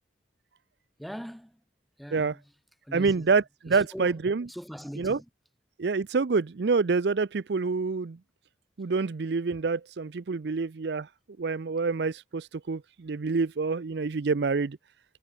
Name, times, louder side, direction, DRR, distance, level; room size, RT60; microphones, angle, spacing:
voice 1, 1.0-1.6 2.0-2.5 2.8-3.4 3.7-4.2 4.5-5.3, equal, ahead, 5.1 m, -41 dB
voice 2, 2.9-4.5 5.0-5.2 5.8-8.2 8.8-11.1 11.4-14.8, right 4 dB, 60° right, 0.5 m, -27 dB
head